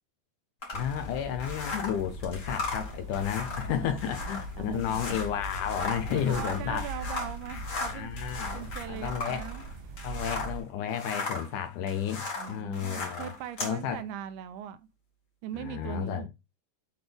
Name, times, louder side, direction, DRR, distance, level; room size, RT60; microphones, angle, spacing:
sound 1, 0.6-10.6 10.9-13.8, left 3 dB, 35° left, 2.0 m, -37 dB
voice 1, 0.7-6.9 7.9-9.4 10.0-13.3 13.6-14.0 15.5-16.3, left 9 dB, 75° left, 2.1 m, -32 dB
sound 2, 0.7-10.6, equal, 55° right, 2.7 m, -40 dB
voice 2, 3.4-4.1 4.6-5.2 6.1-8.1 8.5-9.7 12.4-14.8 15.4-16.3, right 10 dB, 80° right, 2.0 m, -40 dB
8.1 x 3.7 x 3.4 m
omnidirectional pair, 3.9 m